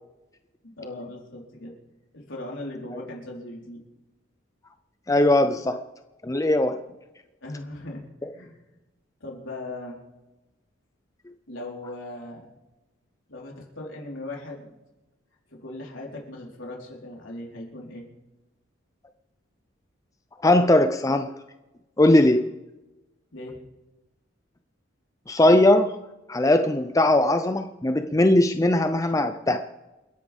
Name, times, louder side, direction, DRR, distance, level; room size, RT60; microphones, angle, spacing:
voice 1, 0.6-1.7 2.1-3.8 7.4-8.6 9.2-10.0 11.5-12.5 13.3-14.7 15.5-18.1 23.3-23.6, left 2 dB, 70° left, -2 dB, 4.1 m, -38 dB
voice 2, 5.1-5.8 6.2-6.8 8.2-8.3 20.4-21.3 22.0-22.5 25.3-26.0 26.3-29.6, left 1 dB, 15° left, 8 dB, 0.5 m, -20 dB
29.0 x 10.5 x 3.5 m, 1.0 s
head